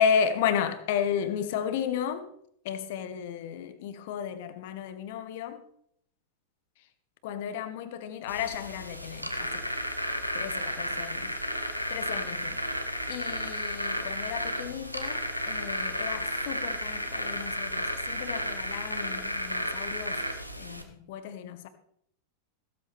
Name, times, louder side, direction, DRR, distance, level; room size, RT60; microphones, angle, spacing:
voice 1, 0.0-2.3 2.6-5.6 7.2-9.5 10.3-11.3 11.9-12.6 13.1-20.2 20.6-21.7, left 8 dB, 50° left, 10 dB, 1.5 m, -33 dB
sound 1, 8.3-20.8, equal, 90° left, 1.4 m, -33 dB
15.5 x 13.5 x 3.5 m, 0.69 s
figure-of-eight pair, 90°, 0 cm